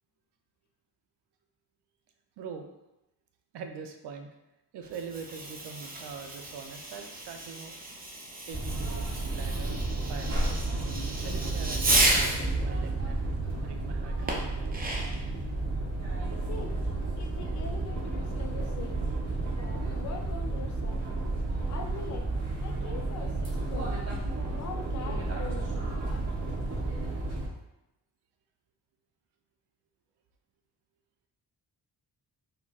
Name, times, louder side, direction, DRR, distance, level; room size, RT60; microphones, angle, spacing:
voice 1, 2.4-2.7 3.5-4.3 4.7-7.8 8.5-9.8 10.1-10.7 11.2-14.4, right 5 dB, 75° right, 5 dB, 0.5 m, -43 dB
Fireworks, 4.8-12.5 14.3-15.3, right 2 dB, 20° right, 0.5 m, -32 dB
sound 1, 8.5-27.5, right 2 dB, 40° right, 1.0 m, -32 dB
voice 2, 16.5-16.8 17.2-19.0 19.6-21.0 21.6-22.3 22.6-24.0 24.5-26.3, left 4 dB, 45° left, 4 dB, 0.4 m, -43 dB
3.8 x 2.1 x 2.3 m, 0.93 s
cardioid pair, 85°, 41 cm